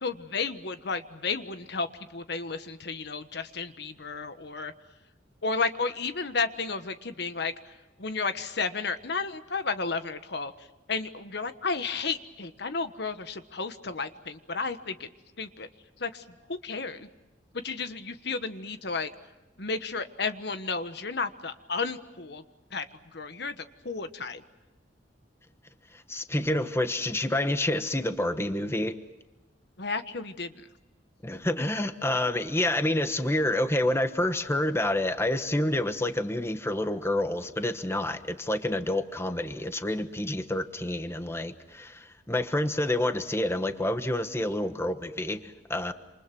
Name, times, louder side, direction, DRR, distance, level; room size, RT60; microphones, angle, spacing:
voice 1, 0.0-4.7 5.4-7.7 8.0-10.5 10.9-15.1 15.4-15.7 16.0-17.1 17.6-19.1 19.6-22.4 22.7-22.8 23.1-24.4 29.8-30.7, left 4 dB, 65° left, 10 dB, 1.3 m, -32 dB
voice 2, 25.9-29.0 31.2-45.9, left 1 dB, 15° left, 9 dB, 1.2 m, -28 dB
28.0 x 27.5 x 6.1 m, 1.1 s
head